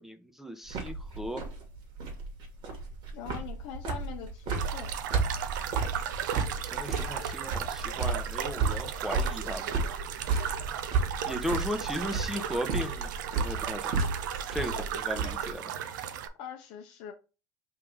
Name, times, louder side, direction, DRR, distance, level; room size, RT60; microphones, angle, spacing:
voice 1, 0.0-1.4 6.7-9.7 11.2-13.1 13.4-13.9 14.5-15.7, equal, 5° right, 0.7 m, -36 dB
sound 1, 0.7-15.5, right 4 dB, 55° right, 1.8 m, -33 dB
voice 2, 3.1-4.9 16.4-17.1, left 9 dB, 65° left, 0.7 m, -42 dB
sound 2, 4.5-16.3, right 9 dB, 85° right, 0.6 m, -35 dB
3.6 x 2.9 x 4.7 m
supercardioid pair, 100°, 10 cm